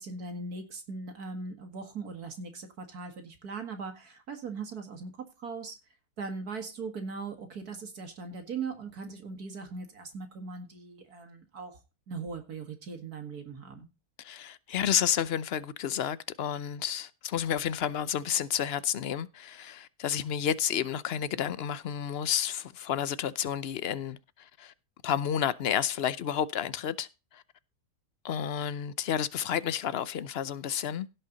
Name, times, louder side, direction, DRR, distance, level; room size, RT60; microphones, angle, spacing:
voice 1, 0.0-5.1 5.4-5.8 6.2-11.8 12.1-13.9, right 4 dB, 75° right, 2.5 m, -39 dB
voice 2, 14.2-24.7 25.0-27.1 27.3-27.4 28.2-31.1, left 9 dB, 55° left, 0.7 m, -31 dB
17.0 x 5.6 x 4.0 m
omnidirectional pair, 1.6 m